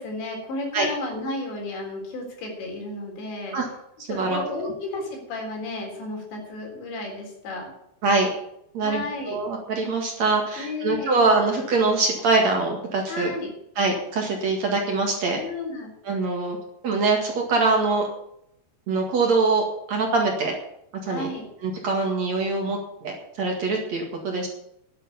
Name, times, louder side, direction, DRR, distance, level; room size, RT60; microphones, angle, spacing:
voice 1, 0.0-3.6 4.1-7.7 8.8-9.4 10.6-11.3 13.1-13.5 15.4-15.9 21.1-21.5, left 2 dB, 85° left, 1 dB, 6.1 m, -33 dB
voice 2, 4.1-4.4 8.0-8.3 8.7-13.3 13.8-15.4 16.1-16.6 16.8-18.1 18.9-20.5 21.0-21.3 21.6-24.5, right 3 dB, 50° right, 1 dB, 2.6 m, -23 dB
11.5 x 8.7 x 8.3 m, 0.75 s
omnidirectional pair, 4.9 m